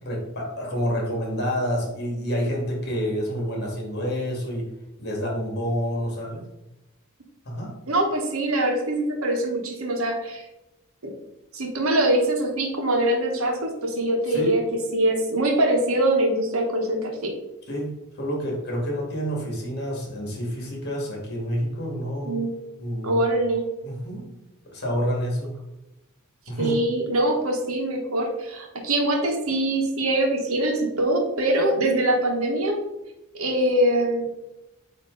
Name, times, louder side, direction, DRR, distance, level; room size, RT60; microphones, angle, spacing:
voice 1, 0.0-4.6 5.0-6.5 7.5-7.7 14.3-14.6 17.7-22.4 22.8-23.2 23.8-24.3 24.7-25.5 26.5-26.8, equal, 50° left, -1 dB, 2.0 m, -28 dB
voice 2, 7.9-10.5 11.0-11.1 11.5-14.6 14.9-17.3 22.3-22.5 23.0-23.6 26.6-32.8 33.4-34.3, right 1 dB, 70° right, 2 dB, 1.2 m, -23 dB
8.4 x 3.0 x 3.9 m, 0.95 s
head